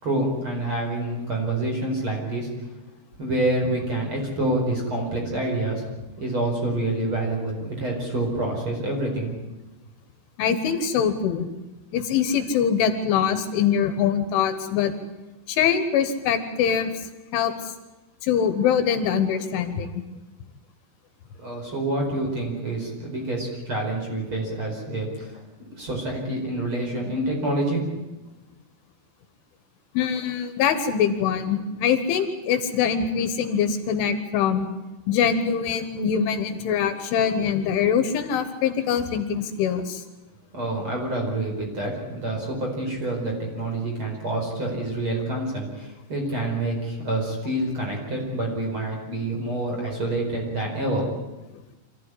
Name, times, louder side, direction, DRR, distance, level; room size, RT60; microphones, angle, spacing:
voice 1, 0.0-2.5 3.2-9.3 21.4-25.4 25.8-27.8 40.5-51.1, right 1 dB, 25° right, 0 dB, 5.2 m, -27 dB
voice 2, 10.4-11.5 11.9-14.9 15.5-16.9 17.3-17.5 18.2-20.0 30.0-34.7 35.1-40.0, left 7 dB, 75° left, 9 dB, 3.6 m, -23 dB
26.0 x 15.0 x 9.9 m, 1.1 s
omnidirectional pair, 5.8 m